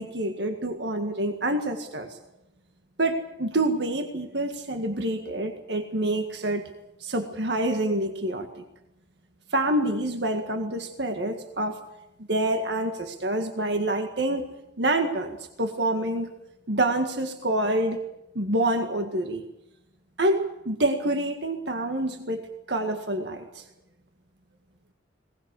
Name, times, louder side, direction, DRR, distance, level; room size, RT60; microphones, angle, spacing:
voice 1, 0.0-2.2 3.0-6.7 7.0-8.6 9.5-11.8 12.3-14.5 14.8-16.3 16.7-18.0 18.4-19.4 20.2-22.4 22.7-23.6, right 1 dB, 65° right, 6 dB, 1.8 m, -27 dB
21.0 x 19.5 x 8.4 m, 0.89 s
head